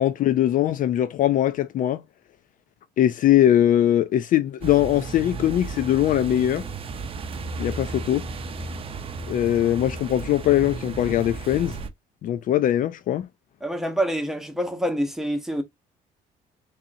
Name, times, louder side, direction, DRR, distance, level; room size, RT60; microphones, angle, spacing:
voice 1, 0.0-2.0 3.0-6.7 7.6-8.2 9.3-11.8 12.2-13.3, left 12 dB, 55° left, 0.4 m, -21 dB
sound 1, 4.6-11.9, right 4 dB, 35° right, 0.6 m, -34 dB
voice 2, 13.6-15.6, equal, ahead, 1.0 m, -26 dB
3.7 x 3.1 x 2.6 m
cardioid pair, 110°, 17 cm